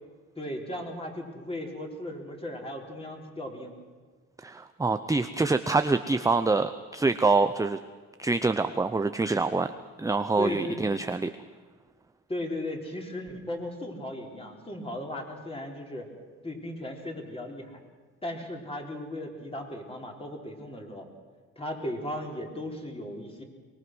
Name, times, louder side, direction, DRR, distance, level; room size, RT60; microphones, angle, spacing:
voice 1, 0.4-3.7 10.4-10.8 12.3-16.1 16.4-17.8 18.2-21.1 21.6-23.4, left 1 dB, 20° left, 1 dB, 4.2 m, -36 dB
voice 2, 4.4-7.8 8.2-11.3, right 3 dB, 10° right, 10 dB, 0.7 m, -26 dB
24.0 x 20.5 x 6.3 m, 1.5 s
cardioid pair, 90°, 30 cm